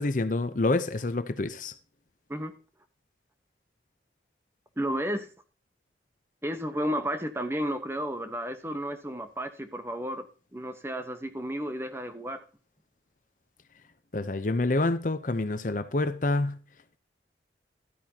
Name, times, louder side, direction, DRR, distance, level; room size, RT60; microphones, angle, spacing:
voice 1, 0.0-1.7 14.1-16.6, left 2 dB, 45° left, 0.7 m, -27 dB
voice 2, 4.8-5.3 6.4-10.3 10.5-12.4, equal, 15° right, 1.0 m, -32 dB
12.5 x 8.9 x 2.8 m
head